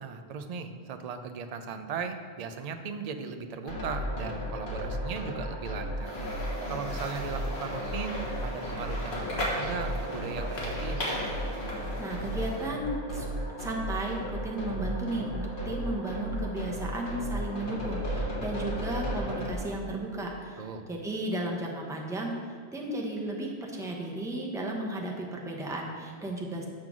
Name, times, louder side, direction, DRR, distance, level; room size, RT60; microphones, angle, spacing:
voice 1, 0.0-6.1 6.7-11.1 20.6-20.9, right 5 dB, 50° right, 7 dB, 0.5 m, -38 dB
sound 1, 3.7-19.5, equal, 50° left, 1.5 m, -35 dB
sound 2, 6.0-12.6, left 1 dB, 70° left, 1.6 m, -36 dB
voice 2, 12.0-13.3 13.6-26.7, right 1 dB, 5° right, -1 dB, 0.7 m, -34 dB
7.4 x 3.8 x 6.0 m, 2.1 s
omnidirectional pair, 1.1 m